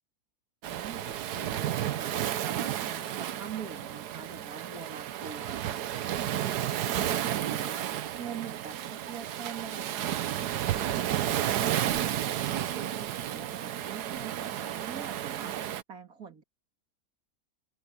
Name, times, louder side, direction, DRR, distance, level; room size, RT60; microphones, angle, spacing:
voice 1, 0.6-16.4, right 6 dB, 65° right, 2.9 m, -45 dB
Waves surf, 0.6-15.8, right 11 dB, 85° right, 1.4 m, -32 dB
open air
omnidirectional pair, 1.6 m